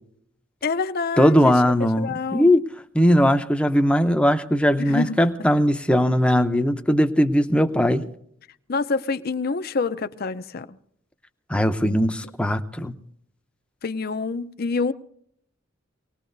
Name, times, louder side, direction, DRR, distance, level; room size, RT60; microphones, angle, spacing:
voice 1, 0.6-1.6 2.0-2.5 4.8-5.2 8.7-10.8 11.8-12.0 13.8-14.9, left 4 dB, 50° left, 0.6 m, -27 dB
voice 2, 1.2-2.7 2.9-8.1 11.5-12.9, equal, 5° left, 0.7 m, -19 dB
25.0 x 19.0 x 2.6 m
head